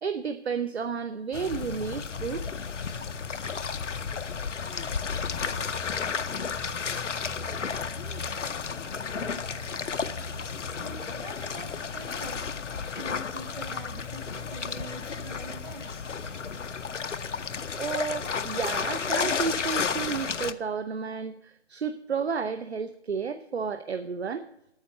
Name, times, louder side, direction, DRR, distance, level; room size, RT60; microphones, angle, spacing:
voice 1, 0.0-2.4 17.7-24.5, right 6 dB, 65° right, 8 dB, 0.7 m, -32 dB
sound 1, 1.3-20.5, left 6 dB, 85° left, 0.8 m, -32 dB
voice 2, 10.7-12.4 12.9-15.9, right 2 dB, 45° right, 5 dB, 1.9 m, -45 dB
9.3 x 6.7 x 8.3 m, 0.79 s
figure-of-eight pair, 165°, 35 cm